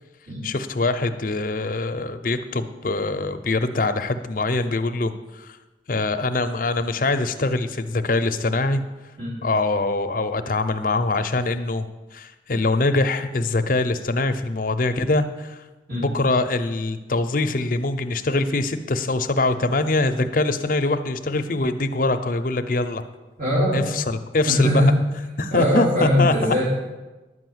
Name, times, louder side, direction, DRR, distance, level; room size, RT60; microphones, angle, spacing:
voice 1, 0.4-5.6 5.9-8.8 9.4-11.9 12.1-15.6 15.9-23.0 23.7-24.8 25.4-26.7, left 2 dB, 50° left, 8 dB, 0.6 m, -23 dB
voice 2, 23.4-23.8 24.4-24.9 25.5-26.7, equal, 50° right, -8 dB, 3.0 m, -21 dB
11.0 x 5.7 x 7.9 m, 1.2 s
head